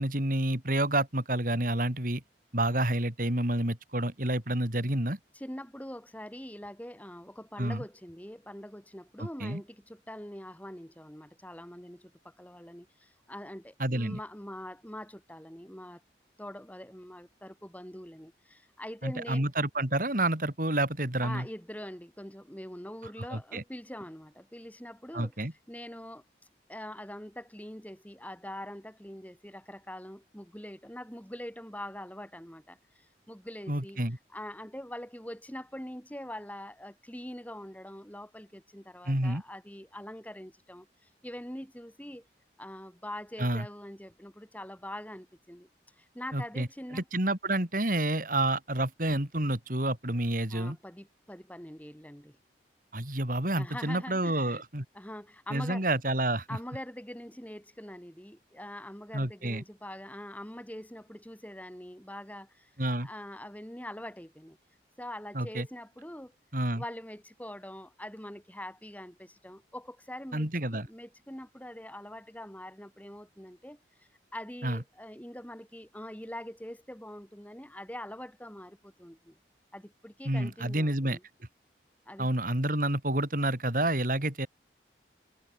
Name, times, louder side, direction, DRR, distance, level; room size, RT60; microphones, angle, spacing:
voice 1, 0.0-2.2 2.5-5.2 7.6-7.8 9.2-9.6 13.8-14.2 19.0-21.5 23.3-23.6 25.1-25.5 33.7-34.2 39.1-39.4 43.4-43.7 46.3-46.7 46.9-50.8 52.9-54.9 55.5-56.5 59.1-59.6 62.8-63.1 65.3-65.7 66.5-66.8 70.3-70.9 74.6-74.8 80.3-81.2 82.2-84.5, right 1 dB, 50° right, 4.1 m, -29 dB
voice 2, 5.3-16.0 16.4-19.5 21.2-26.2 26.7-34.0 34.3-42.2 42.6-45.7 46.0-47.0 50.5-52.4 53.5-54.6 54.9-55.9 56.5-62.7 63.0-64.6 65.0-66.3 66.7-73.8 74.3-79.4 79.7-81.2 82.0-82.3, left 1 dB, 10° left, 5.1 m, -44 dB
head